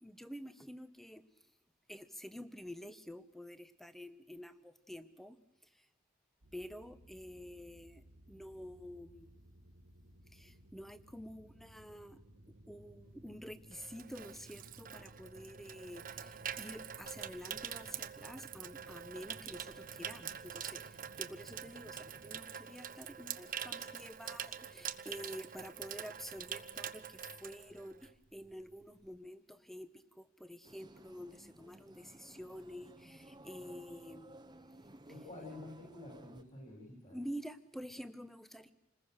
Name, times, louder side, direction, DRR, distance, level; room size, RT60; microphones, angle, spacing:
voice 1, 0.0-1.2 1.9-5.9 6.5-9.3 10.3-12.2 12.7-34.4 37.1-38.7, equal, ahead, 12 dB, 1.1 m, -49 dB
sound 1, 6.4-22.4, right 1 dB, 85° right, 1.6 m, -60 dB
Water tap faucet / Sink (filling or washing), 13.2-28.2 28.5-28.8, right 9 dB, 45° right, 1.0 m, -45 dB
sound 2, 30.6-36.4, right 1 dB, 20° right, 1.1 m, -56 dB
voice 2, 35.1-37.2, left 2 dB, 35° left, -3 dB, 7.2 m, -49 dB
28.0 x 20.0 x 6.6 m, 0.85 s
head